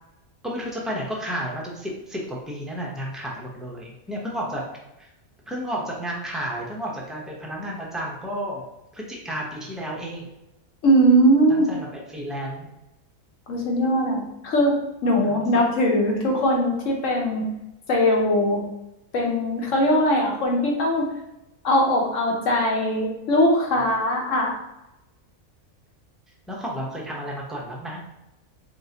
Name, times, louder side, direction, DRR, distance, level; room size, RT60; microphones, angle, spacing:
voice 1, 0.4-4.6 5.0-5.1 5.5-8.6 8.9-10.3 11.5-12.7 15.2-15.6 26.5-28.0, equal, ahead, -3 dB, 0.5 m, -32 dB
voice 2, 10.8-11.7 13.5-17.5 17.9-18.6 19.1-21.1 21.6-24.5, equal, 65° left, 0 dB, 1.2 m, -20 dB
3.8 x 3.7 x 2.8 m, 0.92 s
omnidirectional pair, 1.5 m